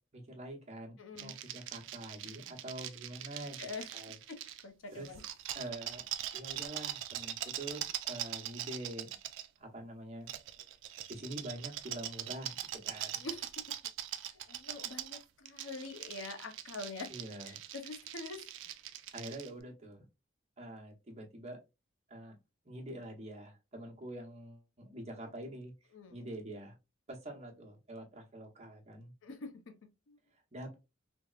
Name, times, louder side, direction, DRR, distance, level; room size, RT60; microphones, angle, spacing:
voice 1, 0.0-3.6 3.9-4.2 4.9-5.2 5.5-6.0 6.3-9.1 9.6-10.3 11.1-13.2 17.1-17.6 19.1-20.0 20.6-21.6 22.1-22.3 22.6-25.7 26.1-26.7 27.1-29.1 30.5-30.7, right 1 dB, 35° right, 0.8 m, -45 dB
voice 2, 1.0-1.4 3.6-3.9 4.3-4.4 4.6-5.2 13.2-13.6 14.5-17.1 17.5-18.4 25.9-26.2 29.2-29.7 30.1-30.2, left 3 dB, 85° left, 0.6 m, -45 dB
sound 1, 1.2-4.6 5.0-9.5 10.3-19.5, right 12 dB, 65° right, 0.3 m, -42 dB
3.4 x 2.0 x 2.3 m
head